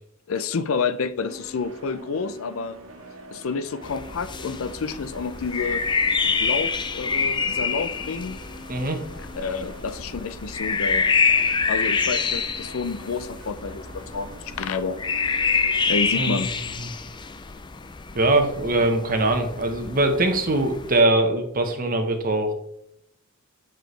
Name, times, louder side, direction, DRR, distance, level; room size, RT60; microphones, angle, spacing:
voice 1, 0.3-2.8 3.3-5.8 6.4-8.4 9.4-11.1 11.7-15.0 15.9-16.5, left 4 dB, 75° left, 0.5 m, -29 dB
sound 1, 1.2-16.5, right 1 dB, 85° right, 1.3 m, -44 dB
sound 2, 3.8-21.0, left 5 dB, 20° left, 0.4 m, -27 dB
voice 2, 18.1-22.5, right 2 dB, 45° right, 1.1 m, -22 dB
9.1 x 4.6 x 3.3 m
head